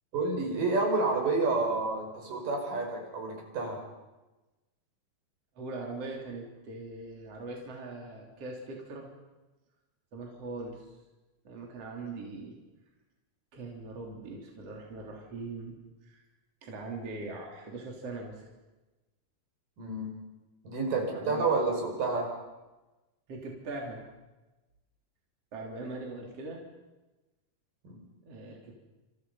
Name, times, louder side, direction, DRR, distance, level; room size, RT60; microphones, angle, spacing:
voice 1, 0.1-3.8 19.8-20.1 20.6-22.3 27.8-28.0, right 3 dB, 75° right, 1 dB, 7.0 m, -29 dB
voice 2, 5.6-9.1 10.1-10.9 11.4-12.6 13.5-15.8 16.0-16.2 16.6-18.4 20.9-21.5 23.3-24.0 25.5-26.6 28.2-28.8, right 3 dB, 45° right, 0 dB, 4.3 m, -41 dB
28.5 x 28.0 x 5.6 m, 1.1 s
omnidirectional pair, 3.9 m